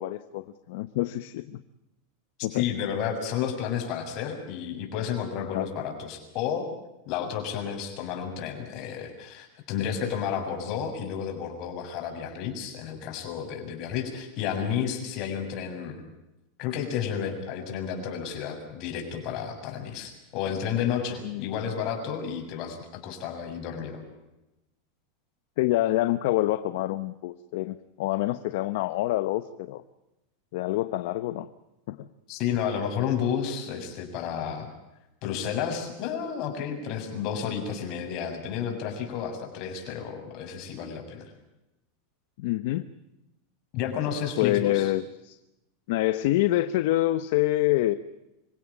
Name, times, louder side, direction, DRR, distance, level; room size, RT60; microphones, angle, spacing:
voice 1, 0.0-1.6 2.4-2.6 5.5-5.7 21.2-21.4 25.6-29.8 30.5-31.5 31.9-32.1 42.4-42.8 44.4-45.4 45.9-47.9, left 16 dB, 65° left, 12 dB, 1.0 m, -26 dB
voice 2, 2.5-6.7 7.1-16.0 16.6-24.0 32.3-34.7 35.2-41.2 43.7-44.9, left 8 dB, 45° left, 4 dB, 6.9 m, -31 dB
26.5 x 16.5 x 8.5 m, 0.94 s
supercardioid pair, 145°, 0 cm